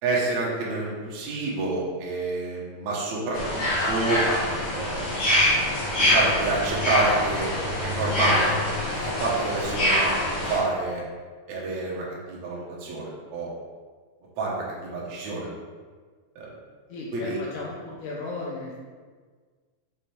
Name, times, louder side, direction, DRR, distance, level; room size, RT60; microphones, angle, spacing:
voice 1, 0.0-4.2 4.7-5.0 5.9-7.5 7.8-8.6 9.0-11.0 11.5-13.5 14.4-15.5 16.3-16.5 17.1-17.4, right 3 dB, 75° right, -5 dB, 1.6 m, -28 dB
sound 1, 3.3-10.6, left 1 dB, 60° left, 1.7 m, -25 dB
voice 2, 16.9-18.8, left 3 dB, 80° left, -4 dB, 2.5 m, -35 dB
6.7 x 3.3 x 4.3 m, 1.5 s
omnidirectional pair, 5.0 m